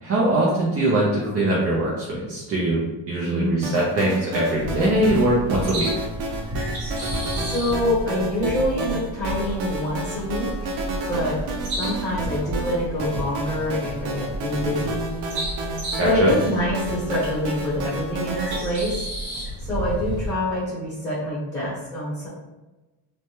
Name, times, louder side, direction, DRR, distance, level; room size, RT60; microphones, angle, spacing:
voice 1, 0.0-2.8 3.1-5.9 16.0-16.3, right 1 dB, 35° right, -5 dB, 0.5 m, -22 dB
voice 2, 3.2-3.7 7.3-10.7 11.1-11.4 11.7-15.1 16.0-19.0 19.6-22.3, left 1 dB, 10° left, -9 dB, 0.8 m, -26 dB
sound 1, 3.6-18.6, right 2 dB, 90° right, 0.6 m, -31 dB
sound 2, 4.5-20.3, right 1 dB, 60° right, 1.1 m, -32 dB
3.2 x 2.2 x 2.7 m, 1.1 s
cardioid pair, 170°, 43 cm